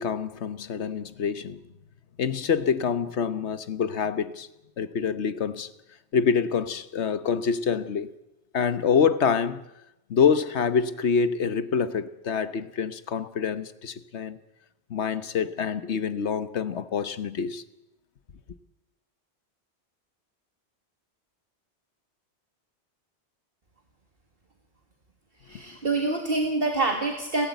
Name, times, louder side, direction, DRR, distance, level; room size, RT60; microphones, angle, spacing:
voice 1, 0.0-1.6 2.2-4.5 4.8-5.7 6.1-8.1 8.5-9.6 10.1-14.4 14.9-17.6, left 6 dB, 80° left, 1.3 m, -26 dB
voice 2, 25.5-27.5, right 3 dB, 55° right, 2.2 m, -26 dB
30.0 x 13.0 x 8.2 m
omnidirectional pair, 1.1 m